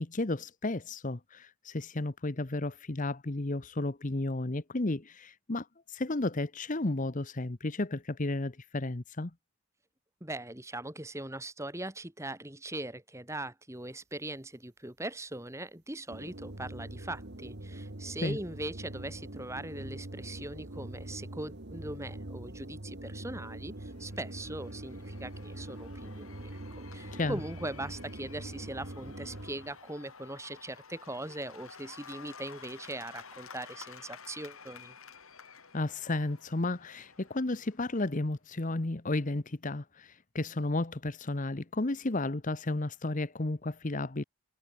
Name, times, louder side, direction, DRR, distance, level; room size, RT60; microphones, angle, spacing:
voice 1, 0.0-9.3 18.2-18.4 27.1-27.4 35.7-44.2, left 2 dB, 35° left, 1.0 m, -33 dB
voice 2, 10.2-26.6 26.9-35.0, right 1 dB, 15° right, 2.4 m, -40 dB
sound 1, 16.1-29.8, right 1 dB, 50° right, 1.8 m, -43 dB
Cheering / Applause / Crowd, 23.5-38.3, left 5 dB, 70° left, 4.4 m, -52 dB
head